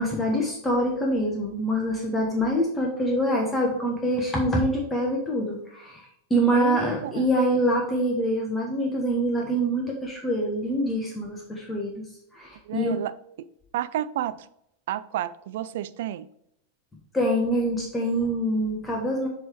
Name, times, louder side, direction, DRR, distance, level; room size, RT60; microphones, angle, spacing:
voice 1, 0.0-12.0 12.3-12.9 17.1-19.3, equal, 10° left, 1.1 m, -25 dB
voice 2, 6.5-7.3 12.7-13.5 13.7-14.4 14.9-16.3, right 12 dB, 55° right, 0.3 m, -31 dB
7.7 x 3.4 x 4.5 m
figure-of-eight pair, 90°, 0 cm